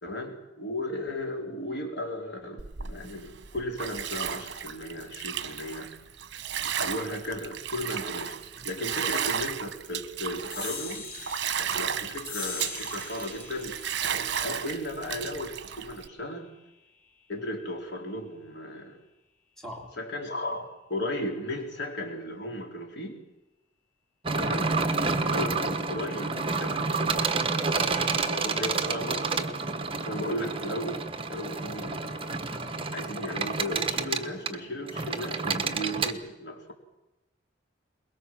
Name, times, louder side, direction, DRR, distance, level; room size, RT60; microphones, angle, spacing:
voice 1, 0.0-5.9 6.6-11.1 11.8-13.8 14.1-16.5 17.3-19.0 20.0-23.2 24.4-24.8 25.0-29.5 30.0-32.2 32.9-36.7, left 1 dB, 60° left, 2 dB, 4.2 m, -35 dB
Bathtub (filling or washing), 2.6-16.1, right 8 dB, 60° right, 1.2 m, -34 dB
sound 1, 10.5-17.3, left 5 dB, 45° left, 4.3 m, -43 dB
voice 2, 19.6-19.9, equal, ahead, 0 dB, 3.0 m, -42 dB
sound 2, 24.2-36.1, right 4 dB, 25° right, 1.2 m, -29 dB
23.0 x 21.5 x 7.6 m, 0.96 s
head